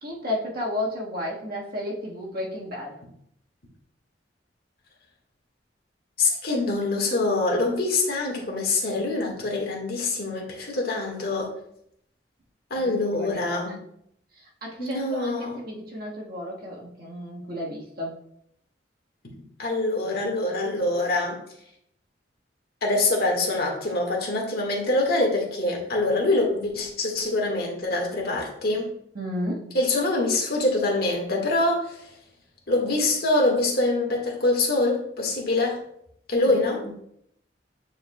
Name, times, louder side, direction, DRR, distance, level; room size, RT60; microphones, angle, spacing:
voice 1, 0.0-3.0 12.8-13.7 14.6-18.2 29.1-29.8 36.5-37.0, left 1 dB, 55° right, -2 dB, 1.5 m, -33 dB
voice 2, 6.2-11.5 12.7-13.8 14.8-15.6 19.6-21.4 22.8-28.9 29.7-32.0 32.7-35.8 36.3-36.8, left 2 dB, 60° left, -1 dB, 1.6 m, -24 dB
9.6 x 4.6 x 2.3 m, 0.71 s
head